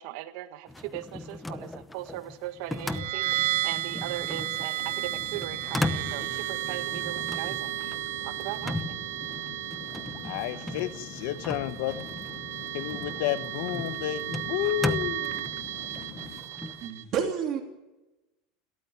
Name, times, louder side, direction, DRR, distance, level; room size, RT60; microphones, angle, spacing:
voice 1, 0.0-8.0 8.2-9.0, right 14 dB, 55° right, 10 dB, 1.6 m, -39 dB
sound 1, 0.7-16.9, left 2 dB, 5° left, 0.9 m, -38 dB
sound 2, 2.7-17.0, right 17 dB, 75° right, 1.1 m, -34 dB
sound 3, 4.8-16.4, left 6 dB, 40° left, 2.9 m, -46 dB
voice 2, 10.2-12.1 12.7-15.5, left 14 dB, 60° left, 13 dB, 0.9 m, -31 dB
voice 3, 16.8-17.6, right 7 dB, 35° right, 4 dB, 3.2 m, -29 dB
29.0 x 13.5 x 9.4 m, 1.0 s
supercardioid pair, 170°, 0 cm